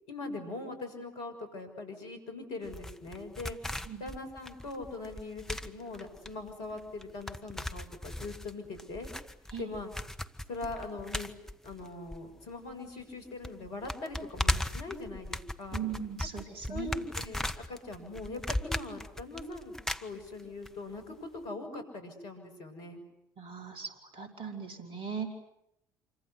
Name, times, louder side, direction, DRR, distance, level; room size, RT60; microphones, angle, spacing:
voice 1, 0.1-3.6 4.0-9.1 9.6-9.9 10.5-11.3 11.6-15.8 16.7-19.7 20.0-23.0, left 2 dB, 60° left, 6 dB, 6.6 m, -41 dB
sound 1, 2.7-12.7 13.0-13.1 13.4-20.7 21.0-21.1, left 1 dB, 5° left, 1.6 m, -37 dB
voice 2, 15.7-16.9 23.4-25.3, right 7 dB, 55° right, 5 dB, 5.1 m, -39 dB
27.5 x 25.0 x 8.2 m, 0.80 s
figure-of-eight pair, 55°, 11 cm